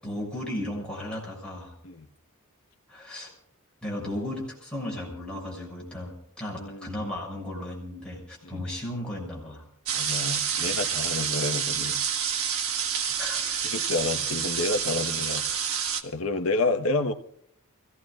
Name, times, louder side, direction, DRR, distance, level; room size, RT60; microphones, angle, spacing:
voice 1, 0.0-1.7 2.9-3.3 3.8-9.6 13.2-13.4, left 1 dB, 5° left, -4 dB, 6.5 m, -35 dB
voice 2, 6.5-6.9 8.4-8.7 9.9-12.0 13.6-15.5 16.0-17.1, left 3 dB, 70° left, 5 dB, 1.3 m, -29 dB
sound 1, 9.9-16.0, right 7 dB, 70° right, 1.5 m, -28 dB
29.0 x 17.0 x 2.5 m, 0.70 s
head